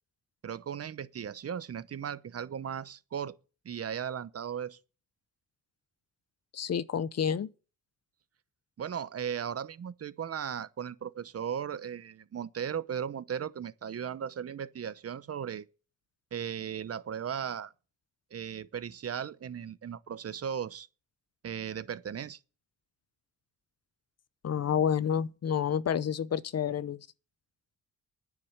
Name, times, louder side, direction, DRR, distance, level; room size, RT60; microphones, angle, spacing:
voice 1, 0.4-3.4 3.6-4.8 8.8-15.7 16.3-17.7 18.3-20.9 21.4-22.4, right 8 dB, 45° right, 0.8 m, -37 dB
voice 2, 6.5-7.5 24.4-27.0, left 8 dB, 50° left, 0.7 m, -29 dB
9.8 x 7.2 x 8.1 m
cardioid pair, 100°, 33 cm